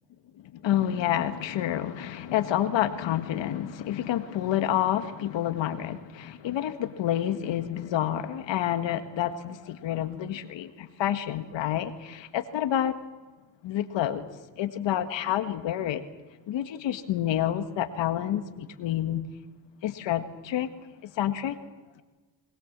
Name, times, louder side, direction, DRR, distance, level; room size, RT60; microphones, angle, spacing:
voice 1, 0.4-13.0 13.6-14.3 14.6-16.0 16.5-19.3 19.8-21.6, left 11 dB, 80° left, 9 dB, 1.8 m, -29 dB
22.5 x 21.0 x 7.4 m, 1.3 s
supercardioid pair, 65°, 44 cm